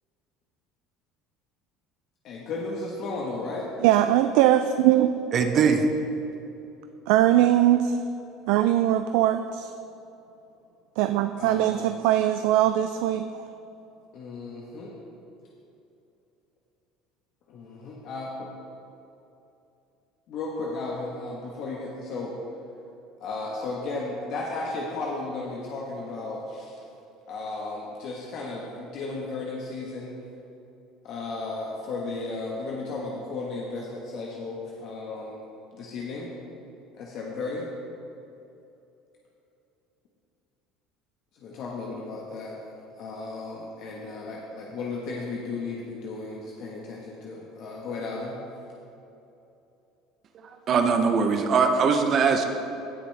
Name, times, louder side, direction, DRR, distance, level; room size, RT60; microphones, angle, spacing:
voice 1, 2.2-3.8 11.4-11.9 14.1-14.9 17.5-18.5 20.3-22.4 23.2-26.7 27.3-30.2 31.0-35.4 35.7-36.3 36.9-37.7 41.3-42.6 43.0-48.4, left 3 dB, 55° left, -3 dB, 1.3 m, -34 dB
voice 2, 3.8-5.1 7.1-8.0 8.5-9.7 11.0-13.3, right 12 dB, 75° right, 9 dB, 0.3 m, -21 dB
voice 3, 5.3-5.9 50.7-52.4, right 5 dB, 40° right, 6 dB, 0.8 m, -21 dB
16.5 x 6.1 x 3.4 m, 2.8 s
supercardioid pair, 120°, 0 cm